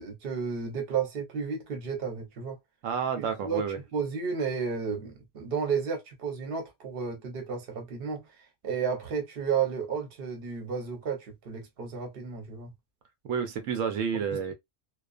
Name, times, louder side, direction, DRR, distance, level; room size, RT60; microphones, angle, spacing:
voice 1, 0.0-2.6 3.2-3.6 3.9-8.2 8.6-12.7 14.3-14.5, right 6 dB, 55° right, 1.0 m, -32 dB
voice 2, 2.8-3.8 13.3-14.5, right 6 dB, 90° right, 1.0 m, -30 dB
2.4 x 2.3 x 2.3 m
omnidirectional pair, 1.3 m